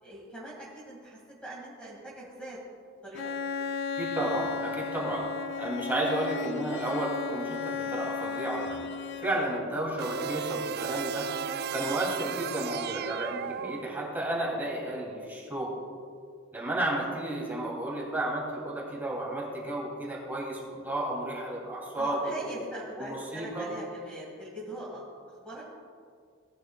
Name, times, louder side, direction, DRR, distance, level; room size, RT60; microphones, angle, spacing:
voice 1, 0.0-2.6 3.0-3.3 4.8-4.9 9.3-9.5 22.0-25.1 25.4-25.6, right 1 dB, 5° left, -7 dB, 2.2 m, -42 dB
Bowed string instrument, 3.1-9.9, left 6 dB, 60° left, 0.5 m, -35 dB
voice 2, 4.0-5.3 5.6-8.9 9.2-11.3 11.7-15.7 16.5-22.6 23.0-23.7, right 1 dB, 10° right, -4 dB, 2.9 m, -32 dB
sound 1, 10.0-14.3, right 7 dB, 50° right, 0.3 m, -35 dB
18.5 x 10.5 x 2.4 m, 2.2 s
head